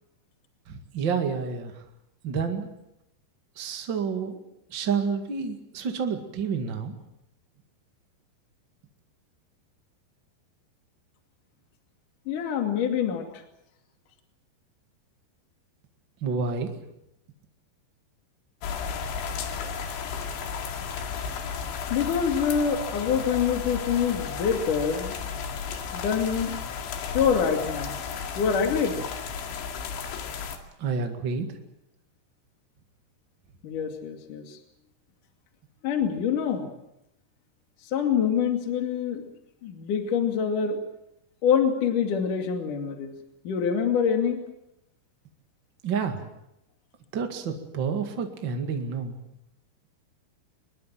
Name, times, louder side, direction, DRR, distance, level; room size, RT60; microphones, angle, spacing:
voice 1, 0.7-1.8 2.2-2.7 3.5-4.4 4.7-7.0 16.2-16.7 30.8-31.5 45.8-46.2 47.1-49.2, right 5 dB, 45° right, 4 dB, 1.5 m, -29 dB
voice 2, 12.3-13.3 21.9-25.1 25.9-26.5 27.0-28.0 28.4-29.0 33.6-34.6 35.8-36.7 37.9-39.3 39.6-40.8 41.4-43.1 43.4-44.4, left 7 dB, 50° left, 4 dB, 3.7 m, -25 dB
sound 1, 18.6-30.6, left 6 dB, 80° left, 4.6 m, -33 dB
24.5 x 22.0 x 7.6 m, 0.85 s
omnidirectional pair, 5.2 m